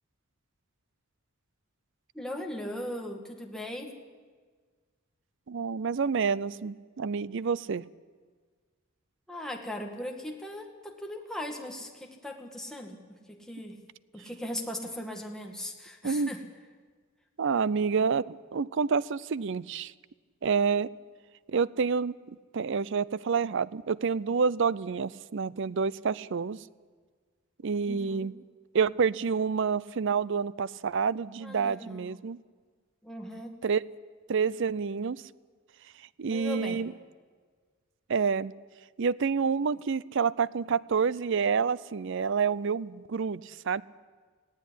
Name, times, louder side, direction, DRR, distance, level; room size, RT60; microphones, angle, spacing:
voice 1, 2.1-4.0 9.3-13.8 14.1-16.4 27.9-28.3 31.4-32.2 33.0-33.6 36.3-36.8, left 1 dB, 5° left, 1 dB, 2.1 m, -39 dB
voice 2, 5.5-7.8 16.0-16.3 17.4-19.9 20.4-20.9 21.5-26.6 27.6-28.3 28.7-32.4 33.6-33.8 34.3-35.2 36.2-36.9 38.1-38.5 39.0-43.8, right 5 dB, 65° right, 20 dB, 0.5 m, -28 dB
19.0 x 16.0 x 9.9 m, 1.5 s
head